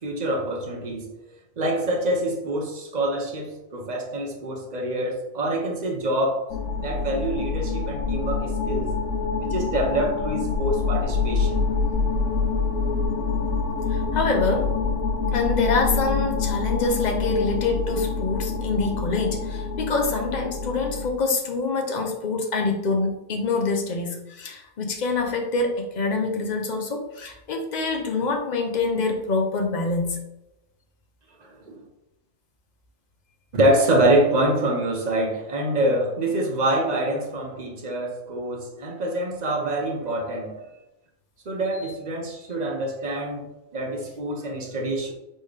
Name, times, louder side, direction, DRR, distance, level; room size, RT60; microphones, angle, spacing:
voice 1, 0.0-1.1 1.6-6.4 6.8-8.9 9.4-11.6 31.7-31.8 33.5-40.6 41.5-43.4 43.7-45.1, right 1 dB, 40° right, 0.8 m, -25 dB
sound 1, 6.5-21.1, left 4 dB, 90° left, 1.0 m, -26 dB
voice 2, 13.9-14.7 15.3-30.2, left 3 dB, 40° left, 0.8 m, -25 dB
4.2 x 3.6 x 3.3 m
omnidirectional pair, 1.3 m